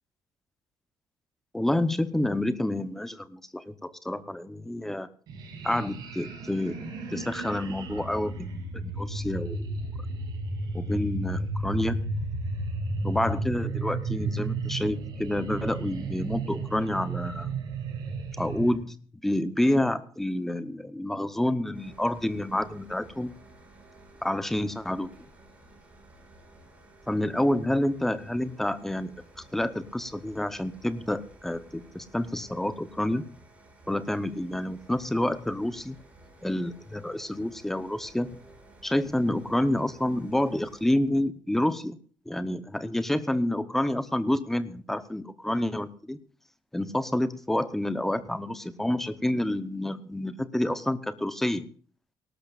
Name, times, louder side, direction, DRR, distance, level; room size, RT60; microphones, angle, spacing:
voice 1, 1.5-5.1 5.6-6.8 7.1-9.8 10.7-12.0 13.0-17.6 18.4-19.0 19.2-23.3 24.2-25.1 27.1-29.1 29.5-33.2 33.9-36.0 36.4-38.4 38.8-42.0 42.3-46.2 46.7-51.6, left 1 dB, 5° left, 11 dB, 0.8 m, -28 dB
sound 1, 5.3-18.8, right 2 dB, 60° right, 7.2 m, -33 dB
sound 2, 21.7-40.8, right 2 dB, 15° right, 4.9 m, -54 dB
19.5 x 18.5 x 2.4 m, 0.44 s
cardioid pair, 180°, 8 cm